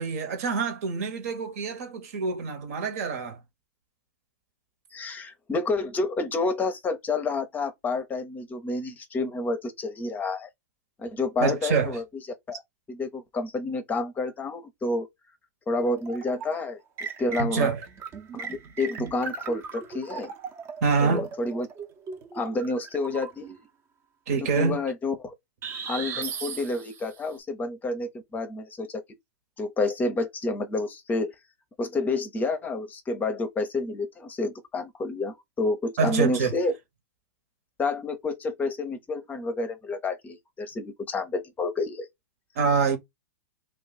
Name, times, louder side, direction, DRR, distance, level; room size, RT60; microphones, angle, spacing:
voice 1, 0.0-3.4 11.4-12.0 17.5-17.8 20.8-21.3 24.3-24.8 36.0-36.5 42.6-43.0, right 5 dB, 60° right, 1.2 m, -26 dB
voice 2, 4.9-10.5 11.0-12.0 12.5-12.6 12.9-15.1 15.7-17.7 18.3-20.3 21.0-21.7 22.3-23.6 24.5-25.3 25.9-29.0 29.6-31.3 31.8-36.7 37.8-42.1, left 3 dB, 20° left, 0.7 m, -29 dB
sound 1, 15.8-16.6 17.0-23.6 25.6-27.2, right 5 dB, 30° right, 0.8 m, -37 dB
2.5 x 2.3 x 3.9 m
hypercardioid pair, 115°, 9 cm